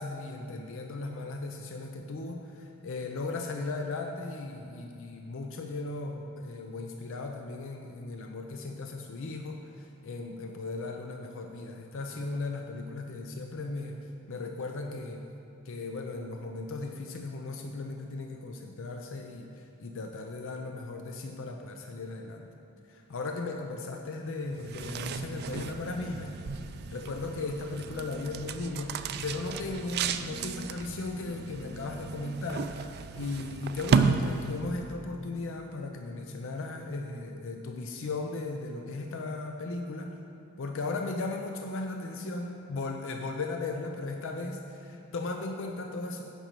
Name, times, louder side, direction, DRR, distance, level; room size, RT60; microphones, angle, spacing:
voice 1, 0.0-14.0 14.3-15.3 15.6-22.5 22.9-26.3 26.9-32.8 33.2-40.1 40.6-46.2, left 3 dB, 65° left, 3 dB, 0.5 m, -37 dB
sound 1, 24.5-34.9, right 5 dB, 50° right, 0.3 m, -33 dB
9.0 x 5.4 x 6.6 m, 2.9 s
head